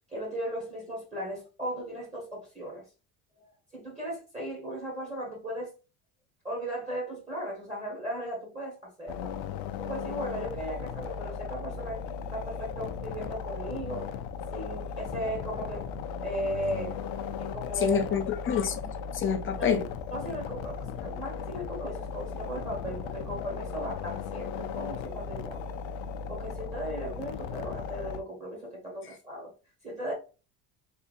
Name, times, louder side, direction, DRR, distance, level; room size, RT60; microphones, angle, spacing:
voice 1, 0.1-2.8 3.4-3.5 3.7-5.7 6.4-9.3 9.8-12.0 12.3-14.1 14.5-15.9 16.2-16.9 17.4-18.2 19.6-19.8 20.1-25.8 26.3-29.5 29.8-30.1, equal, 15° right, 1.3 m, -36 dB
sound 1, 9.1-28.2, left 6 dB, 90° left, 0.6 m, -37 dB
voice 2, 17.8-18.7 19.1-19.8, left 7 dB, 30° left, 0.5 m, -26 dB
3.5 x 2.8 x 2.5 m
cardioid pair, 150°, 47 cm